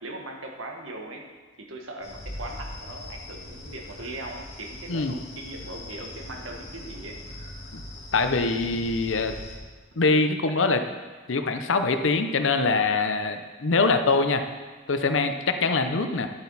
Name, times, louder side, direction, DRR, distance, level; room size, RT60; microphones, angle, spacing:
voice 1, 0.0-1.2 1.6-7.2, right 2 dB, 90° right, 2 dB, 1.5 m, -39 dB
sound 1, 2.0-9.5, left 1 dB, 30° left, 1.8 m, -41 dB
voice 2, 8.1-9.3 10.0-10.8 11.3-14.4 14.9-16.3, left 3 dB, 75° left, 7 dB, 0.7 m, -23 dB
10.5 x 8.5 x 4.1 m, 1.4 s
head